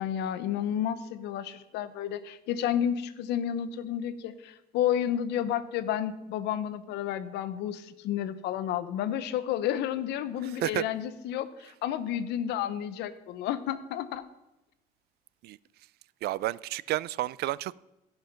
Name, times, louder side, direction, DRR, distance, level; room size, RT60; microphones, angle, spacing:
voice 1, 0.0-14.2, left 10 dB, 85° left, 0.8 m, -31 dB
voice 2, 10.4-10.8 15.4-15.6 16.2-17.7, right 16 dB, 70° right, 0.4 m, -31 dB
16.5 x 5.7 x 5.8 m
cardioid pair, 110°, 17 cm